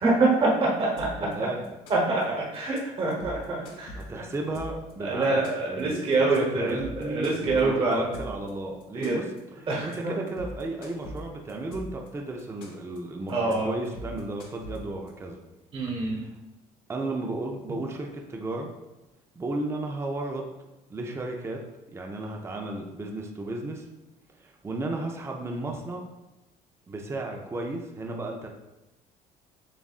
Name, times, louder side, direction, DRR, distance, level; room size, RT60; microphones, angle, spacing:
voice 1, 0.0-1.1 1.4-1.5 1.9-4.0 5.0-8.1 8.9-9.2 9.7-10.2 13.3-13.7 15.7-16.2, right 3 dB, 40° right, -3 dB, 1.1 m, -25 dB
sound 1, 1.0-1.3 1.6-2.2 2.5-2.8 3.1-4.9 5.2-5.8 6.1-6.4 6.7-8.5 8.8-9.4 9.7-10.0 10.3-12.1 12.4-13.0 13.3-13.5 13.8-15.1, left 1 dB, 90° left, 1.0 m, -41 dB
voice 2, 1.2-1.6 4.0-9.3 9.6-15.4 16.0-16.3 16.9-18.7 19.4-20.5 20.9-21.6 21.9-23.9 24.4-26.1 26.9-28.5, right 2 dB, 20° right, 1 dB, 0.5 m, -34 dB
7.0 x 2.5 x 2.4 m, 0.99 s
cardioid pair, 115°, 15 cm